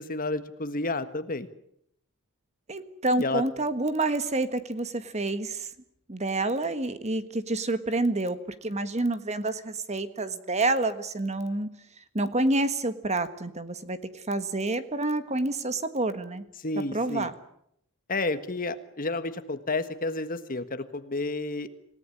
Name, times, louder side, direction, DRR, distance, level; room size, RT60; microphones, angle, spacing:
voice 1, 0.0-1.5 3.2-3.4 16.6-17.3 18.1-21.7, left 2 dB, 40° left, 11 dB, 1.5 m, -31 dB
voice 2, 2.7-5.7 6.1-11.7 12.1-14.0 14.3-16.4 16.9-17.3, right 2 dB, 30° right, 11 dB, 1.6 m, -28 dB
27.5 x 17.5 x 9.9 m, 0.73 s
head